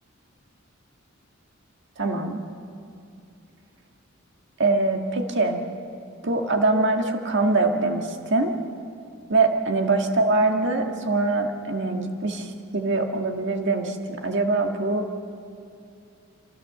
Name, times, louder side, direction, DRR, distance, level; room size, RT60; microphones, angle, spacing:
voice 1, 2.0-2.4 4.6-5.6 6.2-8.5 9.3-15.1, right 3 dB, 60° right, 4 dB, 1.8 m, -23 dB
26.5 x 15.5 x 6.8 m, 2.5 s
head